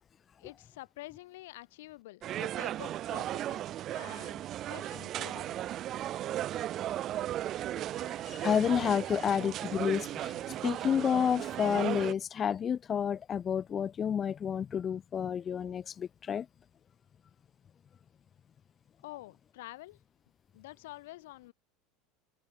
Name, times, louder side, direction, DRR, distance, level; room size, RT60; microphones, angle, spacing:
voice 1, 0.4-5.7 19.0-20.0 20.5-21.5, left 18 dB, 85° left, 7.2 m, -48 dB
sound 1, 2.2-12.1, right 12 dB, 30° right, 0.7 m, -36 dB
voice 2, 8.0-10.4 10.6-16.5, left 8 dB, 20° left, 0.7 m, -30 dB
cardioid pair, 175°, 0 cm